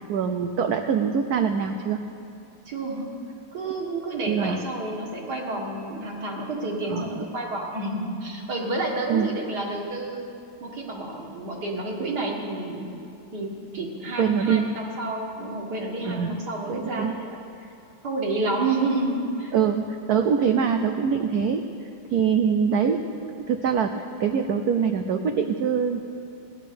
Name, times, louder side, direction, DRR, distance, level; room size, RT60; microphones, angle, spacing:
voice 1, 0.1-2.0 4.3-4.6 6.9-7.2 9.1-9.3 14.2-14.6 16.1-16.4 16.7-17.1 19.5-21.6 22.1-26.0, right 7 dB, 85° right, 6 dB, 0.8 m, -24 dB
voice 2, 2.7-3.1 3.5-10.3 10.6-12.9 13.3-13.5 13.7-17.7 18.0-19.5, right 2 dB, 50° right, -1 dB, 2.3 m, -30 dB
16.5 x 10.5 x 6.9 m, 2.6 s
omnidirectional pair, 2.4 m